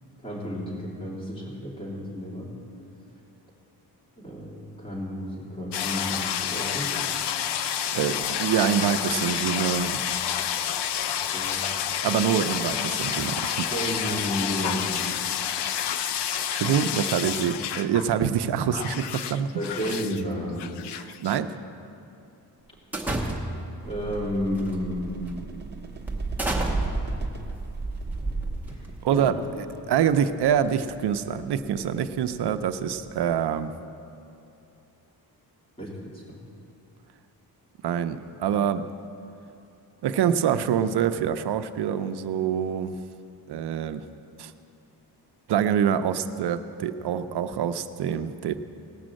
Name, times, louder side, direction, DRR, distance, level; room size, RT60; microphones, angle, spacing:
voice 1, 0.2-2.5 4.2-7.1 11.3-11.6 13.7-15.0 19.5-20.6 23.8-25.2 28.7-29.3 35.8-36.4, equal, 15° left, -5 dB, 2.8 m, -32 dB
sound 1, 5.7-18.1 18.4-20.2 20.6-21.4, left 9 dB, 90° left, 0.6 m, -29 dB
voice 2, 7.9-10.0 12.0-13.7 16.5-19.5 20.9-21.5 29.0-33.8 37.8-38.8 40.0-43.0 43.5-44.0 44.4-44.5 45.5-48.6, right 8 dB, 80° right, 10 dB, 0.6 m, -25 dB
sound 2, 22.9-23.8 24.6-24.8 25.3-25.4 26.1-29.0, right 2 dB, 5° right, 1.1 m, -29 dB
sound 3, 23.8-33.4, right 3 dB, 25° right, 0.9 m, -43 dB
18.0 x 6.2 x 7.5 m, 2.7 s
wide cardioid pair, 150°, 40 cm